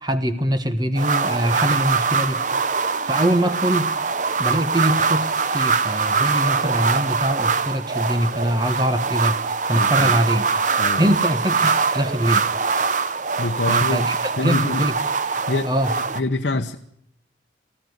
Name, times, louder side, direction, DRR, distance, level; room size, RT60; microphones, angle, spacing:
voice 1, 0.0-2.4 3.1-3.9 4.4-9.4 9.7-10.5 11.0-12.4 13.7-14.2 14.4-14.9 15.3-15.9, equal, 20° right, 9 dB, 1.2 m, -23 dB
sound 1, 1.0-16.2, right 5 dB, 40° right, 0.7 m, -23 dB
voice 2, 9.7-10.1 10.8-11.2 13.4-14.0 14.4-14.8 15.5-15.7 16.1-16.8, left 2 dB, 65° left, 3 dB, 0.9 m, -25 dB
19.0 x 15.0 x 9.5 m, 0.74 s
head